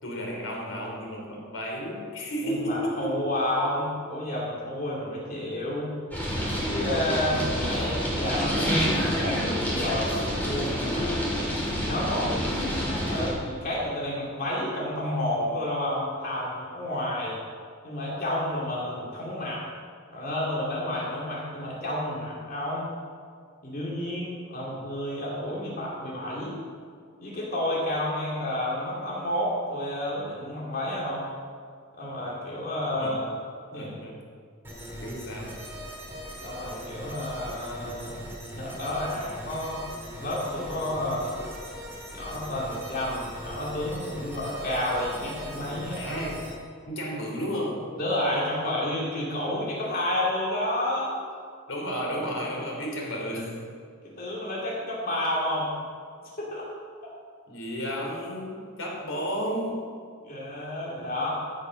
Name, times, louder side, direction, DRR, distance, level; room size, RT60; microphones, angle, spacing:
voice 1, 0.0-3.1 24.5-24.8 33.0-33.2 33.7-34.2 35.0-35.6 46.0-46.5 46.9-47.8 51.7-53.6 57.5-59.8, equal, 75° left, -1 dB, 3.6 m, -32 dB
voice 2, 2.4-5.9 6.7-11.1 11.7-12.4 13.1-17.4 17.8-19.6 20.1-22.9 23.6-26.6 27.2-31.3 32.0-33.2 33.7-34.0 36.4-38.2 38.5-39.8 40.2-41.3 42.1-46.0 48.0-51.2 54.0-55.7 56.2-56.7 57.0-57.1 60.2-61.3, left 1 dB, 45° left, -5 dB, 2.6 m, -30 dB
sound 1, 6.1-13.3, equal, 10° left, 3.3 m, -28 dB
sound 2, 34.6-46.5, equal, 10° right, 2.9 m, -40 dB
15.5 x 7.1 x 6.2 m, 2.1 s
head